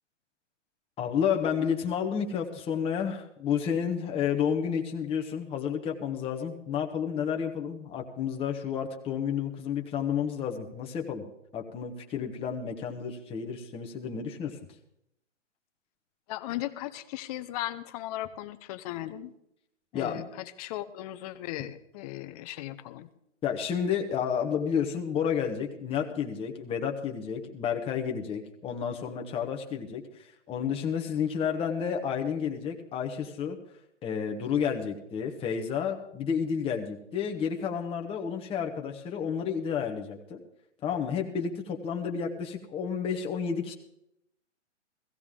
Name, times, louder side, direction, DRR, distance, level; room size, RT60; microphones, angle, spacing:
voice 1, 1.0-11.2 11.5-14.6 19.9-20.2 23.4-33.6 34.0-40.4 40.8-43.7, left 7 dB, 15° left, 3 dB, 1.1 m, -31 dB
voice 2, 16.3-19.3 19.9-23.1, left 14 dB, 30° left, 12 dB, 0.8 m, -37 dB
16.0 x 15.5 x 3.7 m, 0.79 s
hypercardioid pair, 130°, 37 cm